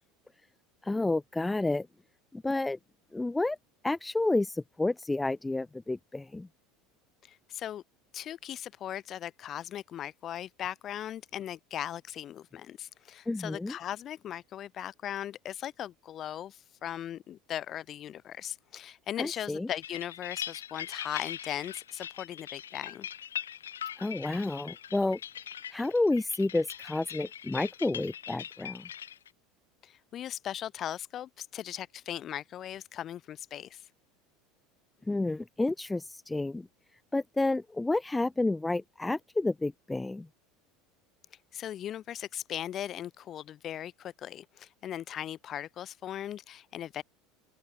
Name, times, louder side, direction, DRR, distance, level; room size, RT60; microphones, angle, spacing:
voice 1, 0.8-1.9 2.3-2.8 3.1-3.6 3.8-6.5 13.3-13.7 19.2-19.7 24.0-25.2 25.7-28.9 35.1-36.7 37.1-40.3, left 2 dB, 10° left, 1.0 m, -30 dB
voice 2, 7.2-7.8 8.1-23.1 29.8-33.9 41.5-47.0, left 11 dB, 40° left, 7.3 m, -38 dB
sound 1, 19.8-29.3, left 9 dB, 80° left, 3.7 m, -41 dB
open air
hypercardioid pair, 75°, 0 cm